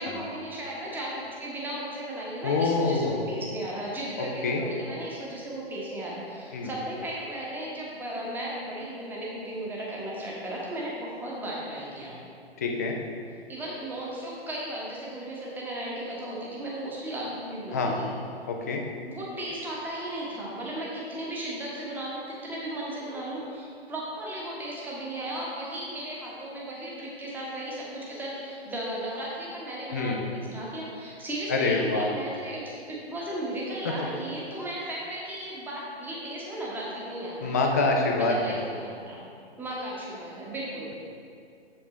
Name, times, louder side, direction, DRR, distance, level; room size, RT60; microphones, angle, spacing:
voice 1, 0.0-12.2 13.5-18.1 19.0-37.6 38.2-39.3 39.6-41.0, right 1 dB, 5° right, -5 dB, 1.0 m, -35 dB
voice 2, 2.4-3.2 4.2-4.6 6.5-6.7 12.6-13.0 17.7-18.0 18.5-18.8 29.9-30.2 31.5-32.1 34.0-34.1 37.4-38.6, left 3 dB, 15° left, 1 dB, 0.3 m, -26 dB
7.3 x 7.0 x 3.2 m, 2.4 s
figure-of-eight pair, 120°, 32 cm